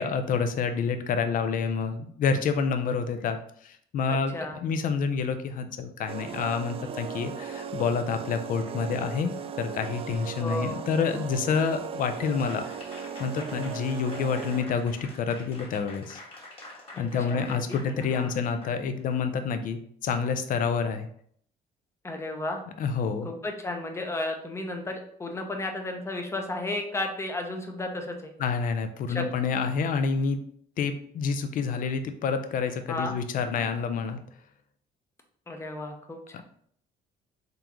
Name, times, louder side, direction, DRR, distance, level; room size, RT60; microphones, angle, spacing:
voice 1, 0.0-12.7 13.2-16.2 17.0-21.1 22.8-23.3 28.4-30.4 30.8-34.2 36.3-36.4, left 5 dB, 55° left, 9 dB, 0.5 m, -28 dB
voice 2, 4.1-4.6 10.4-10.9 16.9-17.6 17.9-18.4 22.0-22.6 23.2-28.3 29.1-29.3 32.9-33.1 35.5-36.4, left 2 dB, 15° left, 3 dB, 0.7 m, -33 dB
sound 1, 6.1-14.8, right 7 dB, 35° right, 0.3 m, -37 dB
Applause / Crowd, 12.0-19.2, left 2 dB, 35° left, 1.3 m, -47 dB
3.8 x 3.5 x 3.0 m, 0.64 s
cardioid pair, 110°, 17 cm